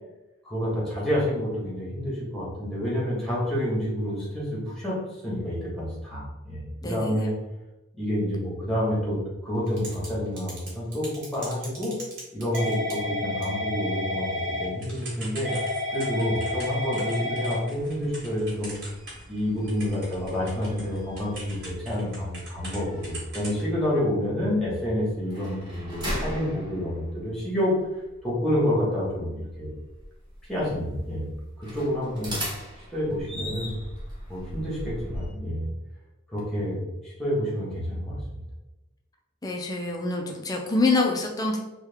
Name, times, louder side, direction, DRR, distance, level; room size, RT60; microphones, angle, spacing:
voice 1, 0.4-5.0 5.2-7.3 7.9-11.9 12.3-15.5 15.9-18.7 19.3-27.7 28.2-29.7 30.5-31.3 31.6-32.4 32.9-33.7 34.3-35.7 36.3-36.8 37.0-38.2, equal, ahead, -7 dB, 1.1 m, -28 dB
voice 2, 6.8-7.2 39.4-41.6, left 3 dB, 20° left, 1 dB, 0.4 m, -26 dB
Typing / Telephone, 9.7-10.1 10.4-19.4 19.7-22.8 23.0-23.6, left 1 dB, 55° right, 1.3 m, -32 dB
sound 1, 17.7-35.3, equal, 20° right, 1.2 m, -40 dB
3.1 x 2.3 x 3.4 m, 0.99 s
head